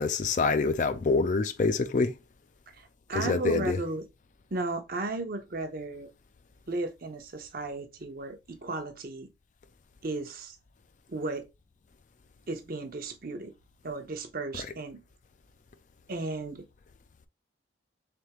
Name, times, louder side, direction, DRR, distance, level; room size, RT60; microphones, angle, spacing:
voice 1, 0.0-2.1 3.2-3.8, left 4 dB, 40° left, 0.4 m, -26 dB
voice 2, 2.7-4.0 4.5-6.1 6.7-9.3 10.0-10.6 11.1-11.5 12.5-13.5 13.8-15.0 16.1-16.7, right 2 dB, 50° right, 0.7 m, -35 dB
3.7 x 3.5 x 2.9 m
head